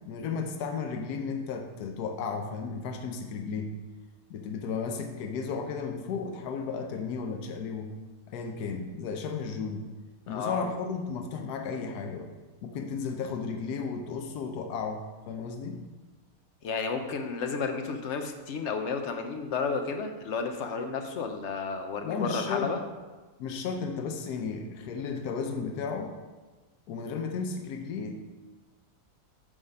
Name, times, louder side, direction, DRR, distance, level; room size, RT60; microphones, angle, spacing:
voice 1, 0.0-3.7 4.3-7.9 8.3-9.8 10.3-12.3 12.6-15.8 22.0-22.7 23.4-26.1 26.9-28.2, left 5 dB, 80° left, 4 dB, 1.2 m, -34 dB
voice 2, 10.3-10.7 16.6-22.8, left 5 dB, 60° left, 6 dB, 0.8 m, -32 dB
8.5 x 3.6 x 5.3 m, 1.3 s
omnidirectional pair, 1.7 m